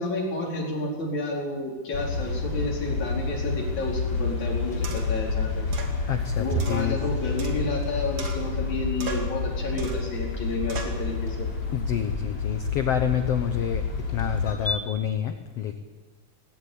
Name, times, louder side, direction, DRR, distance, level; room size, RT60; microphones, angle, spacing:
voice 1, 0.0-5.7 6.4-11.5, left 2 dB, 55° left, -2 dB, 5.6 m, -31 dB
sound 1, 1.9-14.6, left 4 dB, 35° left, 4.3 m, -29 dB
sound 2, 4.8-5.2 5.7-6.0 6.6-7.9 8.2-8.7 9.0-9.4 9.8-10.1 10.7-11.0, right 4 dB, 50° right, 3.4 m, -37 dB
sound 3, 6.0-14.8, right 2 dB, 5° left, 3.0 m, -39 dB
voice 2, 6.1-7.0 11.7-13.8 14.1-15.8, left 9 dB, 70° left, 7 dB, 1.5 m, -28 dB
19.0 x 17.5 x 8.6 m, 1.3 s
omnidirectional pair, 4.1 m